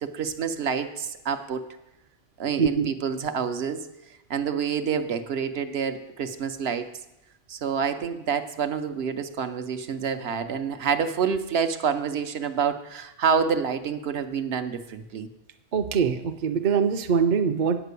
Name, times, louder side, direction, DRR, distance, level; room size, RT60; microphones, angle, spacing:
voice 1, 0.0-1.7 2.4-3.8 4.3-6.9 7.5-15.3, right 6 dB, 75° right, 8 dB, 1.0 m, -27 dB
voice 2, 2.6-2.9 15.7-17.8, right 6 dB, 55° right, 8 dB, 0.7 m, -23 dB
8.3 x 6.0 x 8.2 m, 0.88 s
omnidirectional pair, 1.1 m